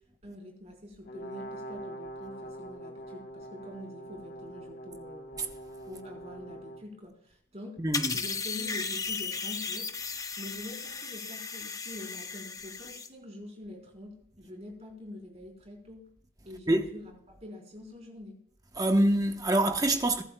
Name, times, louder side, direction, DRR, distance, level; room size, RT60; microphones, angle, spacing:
voice 1, 0.2-5.4 5.9-7.8 8.1-9.9 10.4-16.1 16.4-18.4, left 1 dB, 35° right, 4.1 m, -45 dB
Brass instrument, 1.1-6.9, right 1 dB, 50° left, 1.3 m, -43 dB
voice 2, 7.8-8.2 16.7-16.9 18.8-20.2, right 1 dB, 20° right, 1.0 m, -25 dB
sound 1, 7.9-13.1, left 5 dB, 15° left, 0.7 m, -35 dB
22.0 x 11.5 x 2.3 m
head